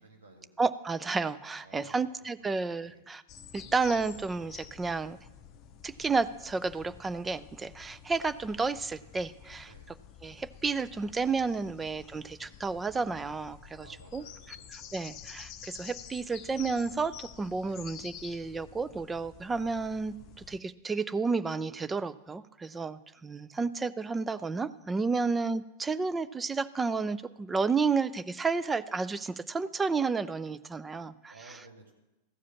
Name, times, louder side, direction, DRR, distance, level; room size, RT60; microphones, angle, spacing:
voice 1, 0.0-0.5 1.6-2.1 2.4-3.0 9.7-9.9 13.8-14.9 17.6-17.8 25.1-25.3 30.9-31.9, right 2 dB, 65° right, 1 dB, 2.1 m, -56 dB
voice 2, 0.6-3.2 3.5-5.2 5.8-9.7 10.2-13.9 14.1-14.2 14.9-20.1 20.5-31.3, right 4 dB, 15° right, 14 dB, 0.4 m, -31 dB
sound 1, 3.3-20.6, left 9 dB, 35° left, 0.6 m, -50 dB
14.5 x 4.9 x 7.1 m, 0.98 s
figure-of-eight pair, 90°, 0 cm